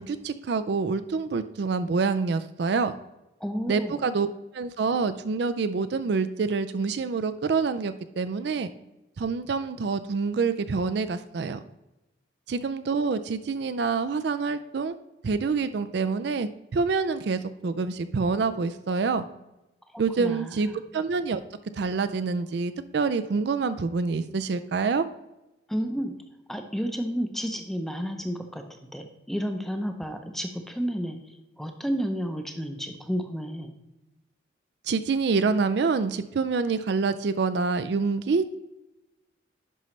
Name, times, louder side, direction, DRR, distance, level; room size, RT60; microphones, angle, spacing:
voice 1, 0.0-2.9 3.7-4.3 4.5-8.7 9.2-11.6 12.5-14.9 15.2-19.3 20.0-21.4 21.7-25.0 34.9-38.6, right 4 dB, 60° right, 11 dB, 0.4 m, -26 dB
voice 2, 3.4-4.0 19.9-20.8 25.7-26.2 26.5-28.6 28.9-33.7, equal, ahead, 5 dB, 0.6 m, -31 dB
11.0 x 5.4 x 3.2 m, 0.97 s
head